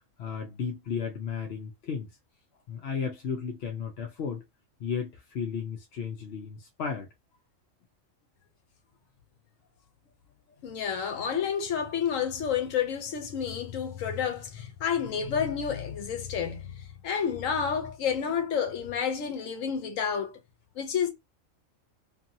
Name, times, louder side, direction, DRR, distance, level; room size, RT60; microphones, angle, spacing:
voice 1, 0.2-2.2 2.7-4.4 4.8-7.1, left 6 dB, 60° left, 0.8 m, -34 dB
voice 2, 10.6-20.4 20.8-21.1, left 7 dB, 80° left, 1.1 m, -30 dB
2.8 x 2.6 x 2.5 m
omnidirectional pair, 1.4 m